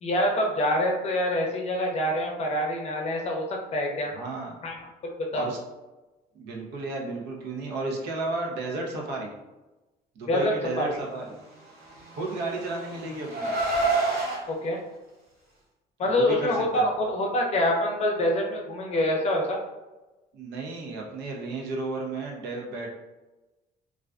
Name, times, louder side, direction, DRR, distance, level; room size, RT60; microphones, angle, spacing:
voice 1, 0.0-3.4 3.7-4.1 4.6-4.7 5.2-5.5 10.3-10.9 14.5-14.8 16.0-19.6, left 1 dB, 40° left, 0 dB, 0.5 m, -25 dB
voice 2, 4.1-4.5 5.3-5.6 6.3-9.3 10.2-11.4 12.2-13.7 16.0-16.9 20.3-22.9, right 2 dB, 80° right, -1 dB, 0.6 m, -33 dB
Car, 11.9-14.4, right 3 dB, 65° right, 1.1 m, -28 dB
2.4 x 2.2 x 2.4 m, 1.1 s
cardioid pair, 110°, 17 cm